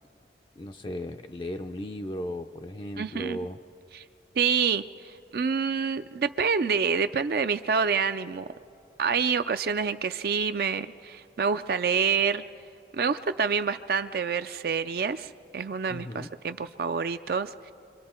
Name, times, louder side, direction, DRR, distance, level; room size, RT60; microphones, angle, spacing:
voice 1, 0.6-3.6 15.9-16.3, left 1 dB, 25° left, 6 dB, 0.4 m, -36 dB
voice 2, 3.0-3.4 3.9-4.0 4.3-4.8 5.3-8.5 9.0-12.4 12.9-17.7, right 6 dB, 55° right, 10 dB, 0.4 m, -27 dB
25.5 x 25.0 x 4.4 m, 2.7 s
head